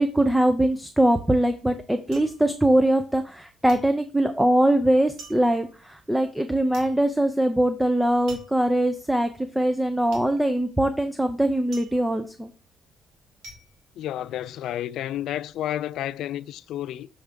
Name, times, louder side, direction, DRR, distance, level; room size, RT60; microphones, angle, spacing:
voice 1, 0.0-12.5, right 1 dB, 5° right, 0.6 m, -22 dB
sound 1, 2.1-3.4 3.7-14.8 15.1-15.7, right 2 dB, 85° right, 2.3 m, -48 dB
voice 2, 14.0-17.1, left 12 dB, 80° left, 0.3 m, -31 dB
6.9 x 3.5 x 5.1 m
cardioid pair, 90°, 0 cm